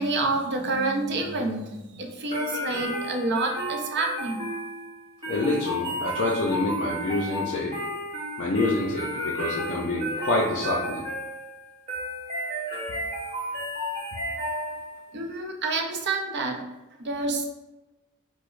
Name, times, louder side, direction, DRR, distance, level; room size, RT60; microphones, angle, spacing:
voice 1, 0.0-4.5 15.1-16.6 17.0-17.4, right 2 dB, 50° right, 3 dB, 0.5 m, -28 dB
sound 1, 2.3-15.1, equal, 25° right, 0.9 m, -33 dB
voice 2, 5.3-7.7 8.4-11.0, left 2 dB, 55° left, -4 dB, 0.4 m, -27 dB
4.7 x 2.0 x 2.5 m, 1.0 s
head